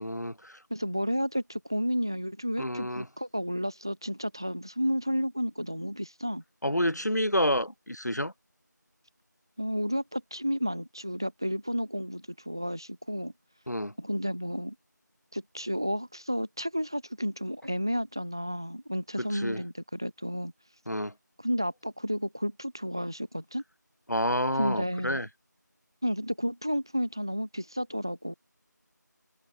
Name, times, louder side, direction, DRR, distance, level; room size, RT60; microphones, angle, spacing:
voice 1, 0.0-0.6 2.6-3.0 6.6-8.3 13.7-13.9 19.3-19.6 20.9-21.1 24.1-25.3, equal, 60° left, 4.6 m, -29 dB
voice 2, 0.7-6.4 9.6-13.3 14.0-14.7 15.3-20.5 21.4-23.6 24.6-25.2 26.0-28.3, equal, 15° right, 3.3 m, -31 dB
figure-of-eight pair, 180°, 10 cm